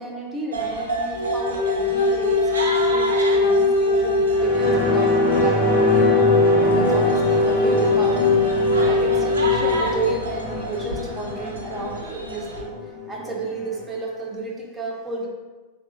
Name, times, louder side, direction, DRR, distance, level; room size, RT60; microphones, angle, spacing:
voice 1, 0.0-6.1 6.6-8.5 8.9-12.8 13.1-15.3, right 3 dB, 10° right, -2 dB, 0.6 m, -32 dB
sound 1, 0.5-12.6, right 2 dB, 75° right, 0.5 m, -32 dB
Wind instrument woodwind instrument, 1.1-9.8, left 2 dB, 70° left, 0.6 m, -20 dB
sound 2, 4.3-13.3 13.7-13.8, left 4 dB, 30° left, 1.4 m, -24 dB
3.6 x 2.4 x 2.7 m, 1.3 s
figure-of-eight pair, 90°, 0 cm